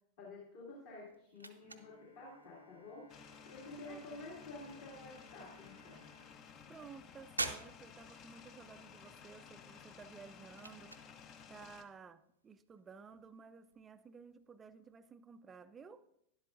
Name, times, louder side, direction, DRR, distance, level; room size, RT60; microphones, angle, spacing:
voice 1, 0.2-3.1 3.5-6.1, left 2 dB, 50° left, -3 dB, 2.2 m, -50 dB
sound 1, 0.6-15.0, right 2 dB, 85° right, 0.7 m, -51 dB
Bowed string instrument, 1.6-7.6, equal, 75° left, 1.4 m, -63 dB
sound 2, 3.1-11.8, left 7 dB, 35° left, 0.7 m, -56 dB
voice 2, 3.9-4.3 6.7-11.0 11.5-16.0, right 5 dB, 20° right, 13 dB, 0.4 m, -55 dB
12.0 x 11.0 x 2.5 m, 0.77 s
figure-of-eight pair, 90°, 0 cm